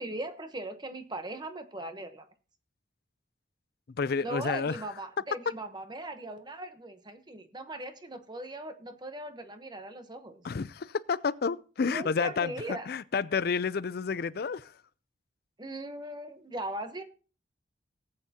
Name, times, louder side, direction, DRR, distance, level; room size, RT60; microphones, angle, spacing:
voice 1, 0.0-2.2 4.2-10.4 11.9-12.9 15.6-17.0, right 1 dB, 25° right, 1.0 m, -39 dB
voice 2, 4.0-4.8 10.4-14.7, left 5 dB, 55° left, 0.4 m, -30 dB
18.0 x 8.6 x 2.8 m
head